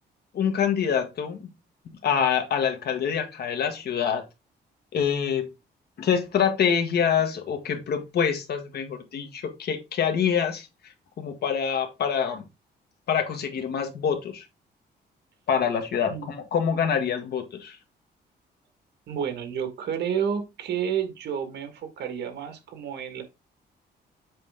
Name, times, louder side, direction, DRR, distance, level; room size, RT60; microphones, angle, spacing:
voice 1, 0.3-1.5 2.0-4.2 4.9-5.5 6.0-10.7 11.2-12.4 13.1-14.4 15.5-17.8, left 7 dB, 65° left, 1.6 m, -25 dB
voice 2, 19.1-23.2, right 8 dB, 70° right, 1.6 m, -30 dB
7.6 x 4.1 x 3.6 m
cardioid pair, 145°, 18 cm